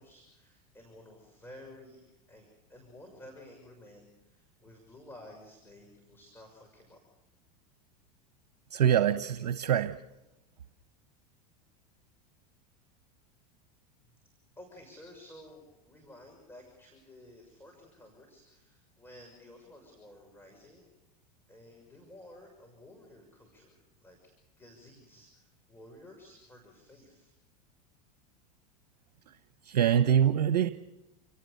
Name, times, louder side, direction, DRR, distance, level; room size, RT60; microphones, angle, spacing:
voice 1, 0.0-7.0 14.6-20.9 21.5-27.3, left 1 dB, 10° left, 1 dB, 6.3 m, -53 dB
voice 2, 8.7-10.0 29.6-30.7, right 9 dB, 80° right, 11 dB, 0.9 m, -24 dB
29.0 x 18.0 x 6.8 m, 0.97 s
hypercardioid pair, 95°, 21 cm